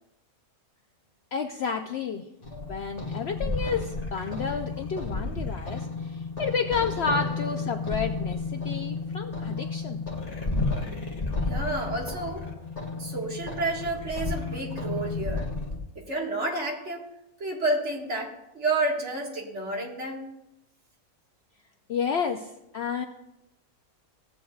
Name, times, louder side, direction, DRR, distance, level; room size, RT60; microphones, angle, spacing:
voice 1, 1.3-2.2 2.7-10.0 21.9-23.0, left 6 dB, 65° left, 4 dB, 0.7 m, -31 dB
sound 1, 2.4-15.8, left 3 dB, 30° left, 1.3 m, -32 dB
voice 2, 11.4-12.5 13.0-15.5 16.0-17.1 17.4-20.2, right 2 dB, 55° right, -1 dB, 2.0 m, -30 dB
16.5 x 8.4 x 2.3 m, 0.89 s
omnidirectional pair, 1.5 m